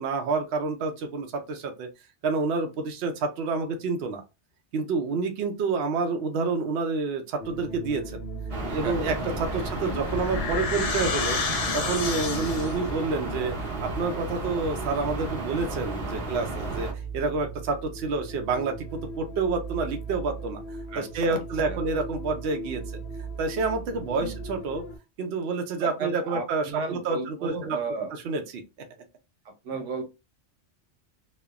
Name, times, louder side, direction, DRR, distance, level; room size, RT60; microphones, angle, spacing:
voice 1, 0.0-1.9 2.2-4.2 4.7-8.2 8.7-9.1 9.4-11.4 11.7-16.9 17.1-22.8 23.4-24.8 25.2-27.8 28.1-28.6, right 4 dB, 65° right, 0.8 m, -28 dB
sound 1, 7.4-25.0, right 3 dB, 65° left, 0.7 m, -38 dB
sound 2, 8.5-16.9, right 1 dB, 30° right, 1.3 m, -33 dB
voice 2, 8.7-9.9 20.9-21.4 21.7-21.8 24.1-24.3 25.8-28.1 29.4-30.0, right 4 dB, 90° right, 1.1 m, -35 dB
sound 3, 9.5-12.9, left 5 dB, 80° left, 1.0 m, -30 dB
3.1 x 2.0 x 2.3 m
omnidirectional pair, 1.2 m